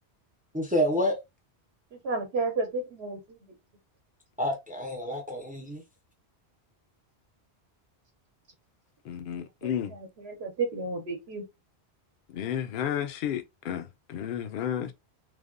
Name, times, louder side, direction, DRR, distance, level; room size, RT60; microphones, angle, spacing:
voice 1, 0.5-1.2 4.4-5.8, equal, 15° right, 0.4 m, -28 dB
voice 2, 2.0-3.4 9.6-11.4, right 3 dB, 70° right, 0.9 m, -32 dB
voice 3, 9.1-9.9 12.3-14.9, left 9 dB, 60° left, 0.6 m, -32 dB
3.3 x 2.1 x 2.4 m
omnidirectional pair, 1.1 m